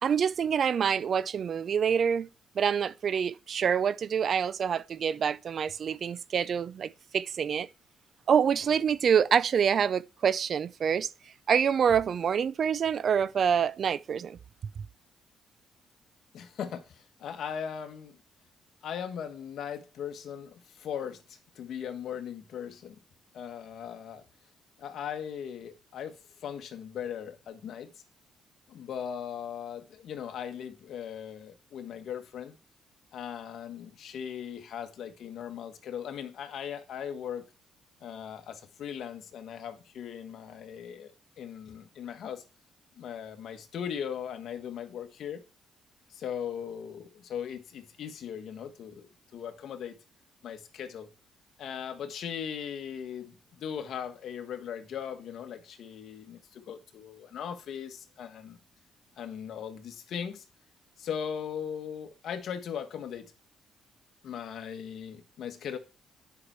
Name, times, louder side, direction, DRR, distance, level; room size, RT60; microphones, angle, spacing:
voice 1, 0.0-2.3 2.6-7.7 8.3-11.1 11.5-14.4 14.8-14.9, right 7 dB, 55° right, 0.4 m, -26 dB
voice 2, 16.3-18.2 18.8-23.0 23.3-24.2 24.8-26.2 26.4-27.9 28.7-32.6 33.1-37.4 38.0-41.1 41.4-42.4 43.0-45.4 46.1-50.0 50.4-51.1 51.6-58.6 59.2-60.4 61.0-63.3 64.2-65.8, left 8 dB, 70° left, 1.4 m, -39 dB
9.7 x 5.8 x 4.4 m
cardioid pair, 90°, 0 cm